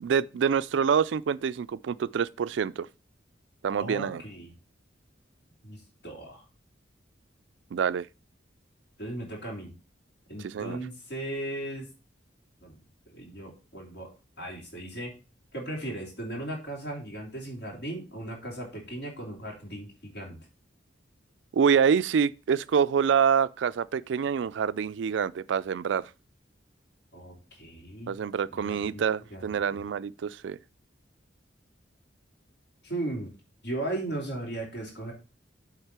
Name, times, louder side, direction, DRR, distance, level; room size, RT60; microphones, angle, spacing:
voice 1, 0.0-2.9 3.6-4.2 7.7-8.1 10.4-10.8 21.5-26.1 28.1-30.6, right 7 dB, 70° right, 0.3 m, -26 dB
voice 2, 3.8-4.5 5.6-6.4 9.0-9.7 10.3-11.9 12.6-12.8 13.1-14.1 14.4-15.1 15.5-20.4 27.1-28.1 28.5-29.0 29.3-29.8 32.8-33.3 33.6-35.1, right 1 dB, 60° left, 3.3 m, -37 dB
8.0 x 3.6 x 5.8 m
head